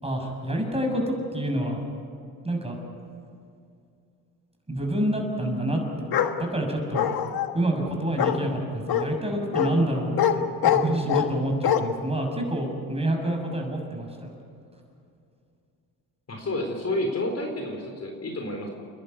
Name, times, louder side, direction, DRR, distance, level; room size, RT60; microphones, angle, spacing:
voice 1, 0.0-1.8 2.4-2.7 4.7-5.8 6.4-7.1 7.5-14.3, right 1 dB, 15° right, 2 dB, 6.6 m, -27 dB
Bark, 6.1-6.3 6.9-7.5 8.2-8.4 8.9-9.1 9.5-9.7 10.2-10.3 10.6-11.3 11.6-11.8, left 9 dB, 60° left, 1.6 m, -23 dB
voice 2, 16.3-18.7, left 1 dB, 35° left, 3 dB, 4.1 m, -30 dB
30.0 x 11.5 x 9.6 m, 2.4 s
supercardioid pair, 70°, 41 cm